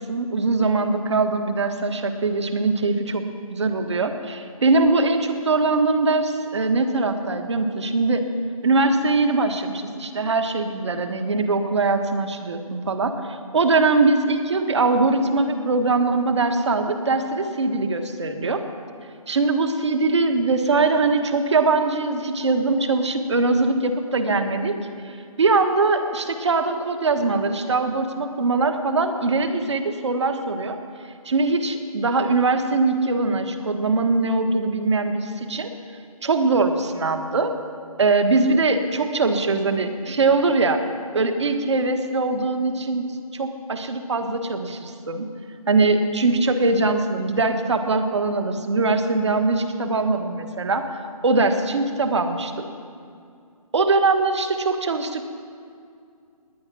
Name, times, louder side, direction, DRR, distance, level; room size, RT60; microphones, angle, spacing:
voice 1, 0.0-3.2 3.5-8.2 8.6-18.6 19.3-24.7 25.0-25.1 25.4-30.8 31.2-35.7 36.2-37.5 38.0-40.8 41.1-45.3 45.7-52.6 53.7-55.3, right 3 dB, 50° right, 7 dB, 1.4 m, -22 dB
19.0 x 10.0 x 6.1 m, 2.4 s
hypercardioid pair, 175°, 19 cm